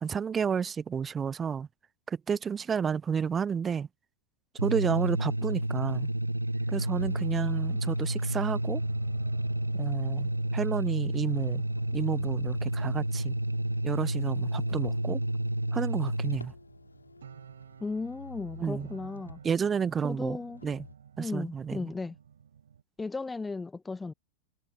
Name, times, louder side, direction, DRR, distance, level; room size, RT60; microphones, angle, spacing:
voice 1, 0.0-1.7 2.1-3.9 4.6-6.1 6.7-8.8 9.7-11.6 11.9-13.4 13.8-15.2 15.7-16.5 18.6-18.9 19.4-20.9 21.2-21.9, right 7 dB, 20° right, 0.8 m, -31 dB
sound 1, 4.6-16.4, right 1 dB, 85° right, 0.3 m, -30 dB
sound 2, 6.4-22.8, right 8 dB, 65° right, 4.8 m, -53 dB
Motor vehicle (road), 6.9-10.4 11.7-15.2 16.3-19.6 20.5-20.9, left 3 dB, 80° left, 3.0 m, -50 dB
voice 2, 17.8-19.4 20.0-20.6 21.2-22.2 23.0-24.1, left 3 dB, 10° left, 0.5 m, -36 dB
figure-of-eight pair, 90°, 0 cm